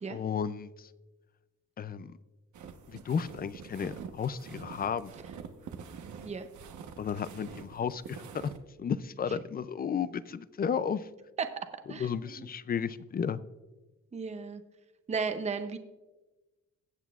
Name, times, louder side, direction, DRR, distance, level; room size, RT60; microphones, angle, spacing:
voice 1, 0.1-0.7 1.8-2.1 2.9-5.1 7.0-8.5 8.8-11.1 11.9-13.4, left 7 dB, 30° left, 16 dB, 0.4 m, -33 dB
sound 1, 2.5-8.6, right 6 dB, 75° right, 1.1 m, -46 dB
voice 2, 11.9-12.5 14.1-14.6 15.1-15.8, right 5 dB, 25° right, 8 dB, 0.6 m, -34 dB
21.5 x 8.0 x 2.4 m, 1.1 s
cardioid pair, 135°, 30 cm